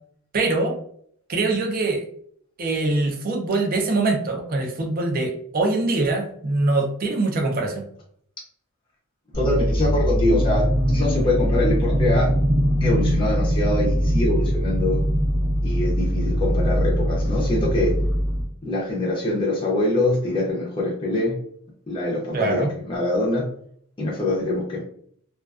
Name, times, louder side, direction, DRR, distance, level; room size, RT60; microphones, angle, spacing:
voice 1, 0.3-0.7 1.3-2.1 2.6-7.8 22.3-22.7, right 2 dB, 40° right, 2 dB, 0.4 m, -23 dB
voice 2, 9.3-12.3 12.8-15.0 15.6-17.9 18.6-21.4 21.9-23.5 24.0-24.8, left 1 dB, 20° left, -4 dB, 0.5 m, -24 dB
sound 1, 9.3-18.4, equal, 80° right, 0.7 m, -22 dB
2.3 x 2.3 x 2.3 m, 0.63 s
head